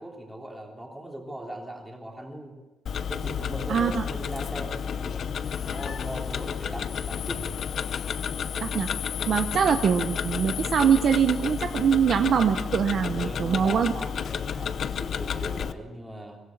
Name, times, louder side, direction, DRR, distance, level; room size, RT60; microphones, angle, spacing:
voice 1, 0.0-2.6 3.1-7.6 13.1-16.4, right 1 dB, 5° right, 0 dB, 3.4 m, -39 dB
Tick-tock, 2.9-15.7, left 7 dB, 45° left, 0.8 m, -31 dB
voice 2, 3.7-4.0 8.6-8.9 9.3-13.9, right 7 dB, 45° right, 7 dB, 0.9 m, -23 dB
sound 1, 5.4-12.2, left 10 dB, 75° left, 2.0 m, -39 dB
23.5 x 17.5 x 7.3 m, 1.2 s
cardioid pair, 170°, 0 cm